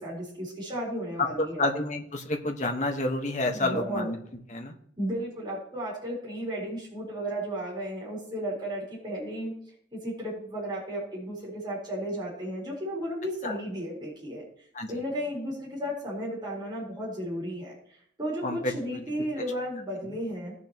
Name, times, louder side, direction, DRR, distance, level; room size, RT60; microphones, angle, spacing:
voice 1, 0.0-1.6 3.5-4.1 5.0-9.5 9.9-14.4 14.9-17.7 18.2-20.5, equal, 25° right, -7 dB, 4.1 m, -34 dB
voice 2, 1.6-4.2 4.5-4.7 13.4-13.5 14.7-14.9 18.4-18.7, left 2 dB, 40° left, 3 dB, 1.4 m, -29 dB
18.0 x 7.0 x 3.0 m, 0.67 s
head